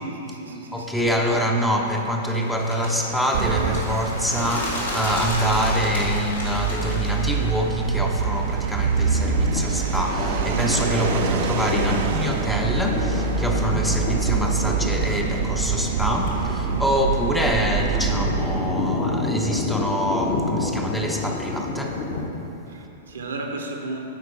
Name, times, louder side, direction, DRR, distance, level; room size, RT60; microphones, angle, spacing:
voice 1, 0.0-1.3 22.7-24.1, right 2 dB, 70° right, 2 dB, 0.8 m, -34 dB
voice 2, 0.7-22.0, equal, 5° left, 0 dB, 0.6 m, -25 dB
Bird, 2.2-7.5, left 1 dB, 75° left, 1.5 m, -32 dB
sound 1, 3.3-18.8, right 6 dB, 55° right, 0.4 m, -25 dB
Thunder, 9.1-22.3, left 2 dB, 40° left, 1.0 m, -29 dB
9.2 x 4.4 x 4.2 m, 3.0 s
figure-of-eight pair, 100°, 0 cm